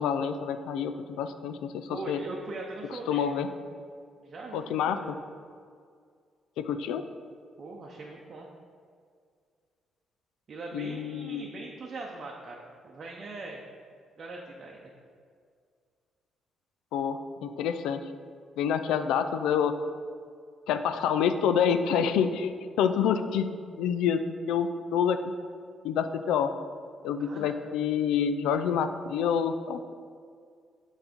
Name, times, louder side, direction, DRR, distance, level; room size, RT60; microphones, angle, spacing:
voice 1, 0.0-2.2 3.1-3.5 4.5-5.2 6.6-7.0 10.7-11.5 16.9-18.0 18.6-19.7 20.7-22.5 22.8-23.5 23.8-24.2 24.5-25.2 25.8-26.5 27.0-29.9, left 7 dB, 90° left, 9 dB, 0.3 m, -27 dB
voice 2, 1.9-3.3 4.2-5.1 7.6-8.5 10.5-13.6 14.2-14.9 27.2-27.6, right 2 dB, 45° right, -1 dB, 0.7 m, -41 dB
5.8 x 4.1 x 5.1 m, 2.1 s
cardioid pair, 90°, 0 cm